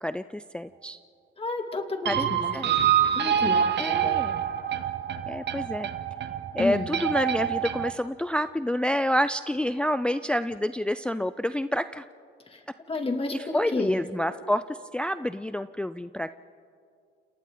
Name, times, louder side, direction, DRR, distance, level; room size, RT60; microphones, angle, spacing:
voice 1, 0.0-1.0 2.1-2.3 2.5-2.7 3.8-4.5 5.3-5.9 6.5-12.1 13.3-16.3, left 1 dB, 5° left, 12 dB, 0.4 m, -28 dB
voice 2, 1.4-2.8 3.1-4.2 6.6-6.9 12.5-12.6 12.9-13.4 13.7-14.0, left 3 dB, 30° left, 4 dB, 2.6 m, -31 dB
sound 1, 2.1-7.9, right 9 dB, 60° right, 1.1 m, -26 dB
28.5 x 28.5 x 3.9 m, 2.4 s
cardioid pair, 90°, 20 cm